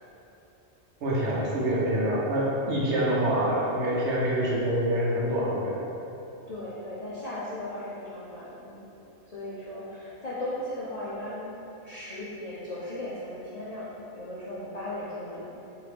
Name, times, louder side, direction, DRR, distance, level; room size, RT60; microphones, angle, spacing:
voice 1, 1.0-5.8, right 1 dB, 70° right, -5 dB, 1.0 m, -26 dB
voice 2, 6.5-8.9 9.3-11.5 11.8-15.6, left 1 dB, 55° left, -9 dB, 0.4 m, -37 dB
3.6 x 2.7 x 3.3 m, 3.0 s
omnidirectional pair, 1.2 m